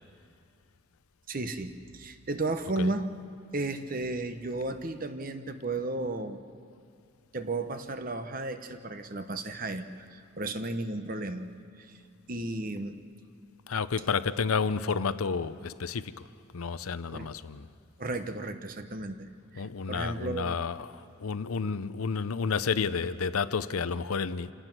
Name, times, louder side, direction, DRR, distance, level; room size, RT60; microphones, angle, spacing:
voice 1, 1.3-3.1 3.5-6.4 7.3-11.5 11.8-12.0 12.3-13.0 17.1-17.3 18.0-20.6, right 2 dB, 40° right, 0.9 m, -34 dB
voice 2, 13.7-16.3 16.5-17.7 19.6-24.5, left 5 dB, 85° left, 0.6 m, -31 dB
28.0 x 18.0 x 6.1 m
head